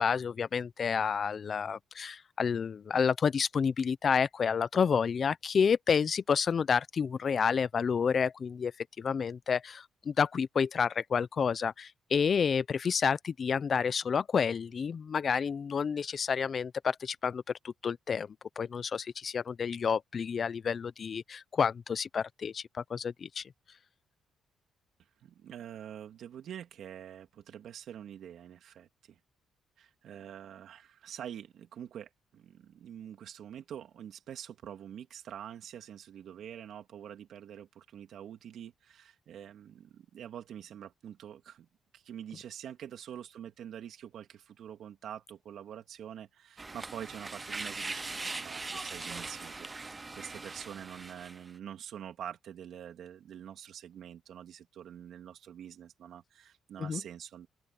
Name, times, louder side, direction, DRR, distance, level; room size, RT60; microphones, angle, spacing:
voice 1, 0.0-8.7 9.0-18.3 18.6-23.4 56.8-57.0, left 6 dB, 45° left, 0.8 m, -29 dB
voice 2, 25.2-29.2 29.8-41.7 41.9-57.5, right 9 dB, 70° right, 3.1 m, -46 dB
sound 1, 46.6-51.5, right 3 dB, 25° right, 0.4 m, -40 dB
open air
cardioid pair, 90°, 0 cm